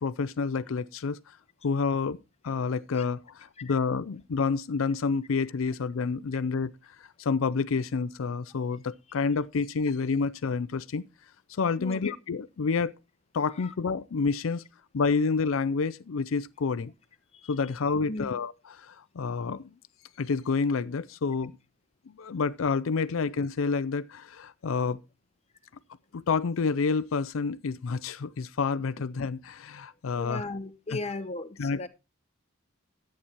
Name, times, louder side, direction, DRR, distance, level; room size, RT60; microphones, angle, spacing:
voice 1, 0.0-1.4 1.6-2.2 2.4-11.1 11.5-13.0 13.3-14.6 14.9-16.9 17.5-19.7 20.2-21.5 22.1-25.0 26.1-30.4 31.6-31.9, left 4 dB, 85° left, 0.5 m, -29 dB
voice 2, 11.8-12.1 13.6-13.7 17.3-17.5 18.1-18.3 30.2-31.9, left 2 dB, 30° left, 1.0 m, -37 dB
11.5 x 8.6 x 4.4 m
head